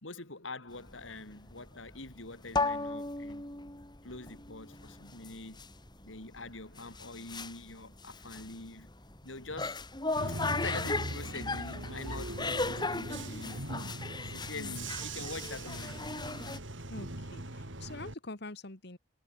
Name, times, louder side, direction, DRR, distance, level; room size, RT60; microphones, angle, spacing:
voice 1, 0.0-3.5 4.0-5.7 6.0-8.9 9.2-9.9 10.6-16.0, left 3 dB, 90° left, 4.7 m, -45 dB
sound 1, 0.7-16.6, left 3 dB, 25° left, 4.2 m, -37 dB
Bus / Engine, 10.2-18.1, right 1 dB, 75° right, 3.9 m, -40 dB
voice 2, 16.9-19.0, left 2 dB, 60° left, 2.2 m, -45 dB
head